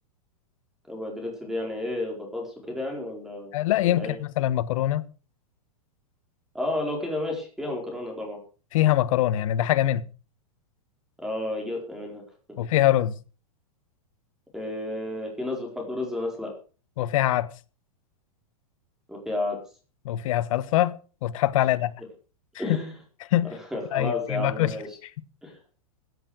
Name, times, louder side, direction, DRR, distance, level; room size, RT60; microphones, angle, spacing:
voice 1, 0.9-3.5 3.8-4.2 6.5-8.4 11.2-12.2 14.5-16.5 19.1-19.6 22.6-22.9 23.7-24.9 25.4-25.6, left 2 dB, ahead, 4.5 m, -31 dB
voice 2, 3.5-5.0 8.7-10.1 12.6-13.1 17.0-17.5 20.0-21.9 23.3-23.5 23.9-24.7, left 13 dB, 65° left, 1.2 m, -23 dB
16.0 x 8.0 x 6.4 m
hypercardioid pair, 135°, 19 cm